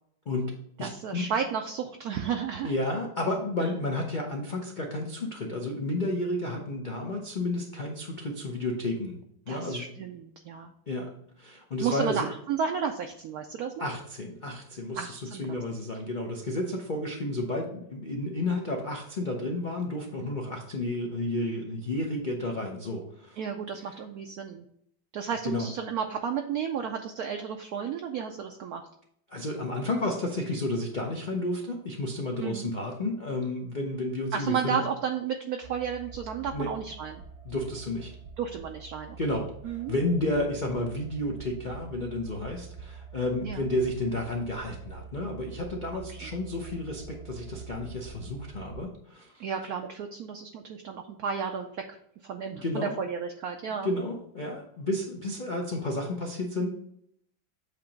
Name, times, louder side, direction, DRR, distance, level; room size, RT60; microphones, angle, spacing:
voice 1, 0.3-1.3 2.6-9.2 9.5-9.8 10.9-11.1 11.4-12.3 13.8-23.4 25.4-25.7 29.3-34.9 36.5-36.7 37.4-38.1 39.2-49.4 52.6-52.9 53.8-56.7, left 1 dB, 75° left, 0 dB, 0.4 m, -31 dB
voice 2, 0.8-2.7 3.6-3.7 9.5-10.7 11.8-13.9 15.0-15.6 23.4-24.6 25.1-28.8 32.4-32.7 34.3-37.2 38.4-39.9 43.4-43.6 46.1-46.3 49.4-52.0 52.2-53.9, right 7 dB, 75° right, 4 dB, 0.9 m, -33 dB
sound 1, 35.6-48.8, right 6 dB, 50° right, 0.9 m, -46 dB
8.0 x 2.9 x 5.1 m, 0.71 s
omnidirectional pair, 2.1 m